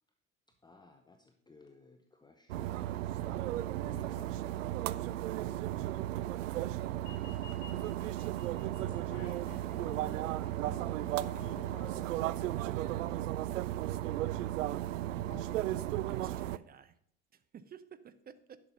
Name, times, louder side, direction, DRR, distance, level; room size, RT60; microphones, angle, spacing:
voice 1, 0.6-4.5 7.1-8.4 10.2-10.3 14.0-14.2, left 3 dB, 10° left, 5 dB, 0.8 m, -60 dB
sound 1, 2.5-16.6, right 14 dB, 70° right, 0.5 m, -35 dB
sound 2, 7.0-12.0, left 7 dB, 65° left, 1.0 m, -58 dB
voice 2, 8.6-10.2 10.6-12.0 15.3-15.6, left 3 dB, 35° left, 1 dB, 3.2 m, -51 dB
voice 3, 16.1-17.0 17.3-18.6, right 8 dB, 25° right, 13 dB, 0.7 m, -53 dB
10.5 x 5.9 x 5.4 m, 0.66 s
figure-of-eight pair, 70°, 40 cm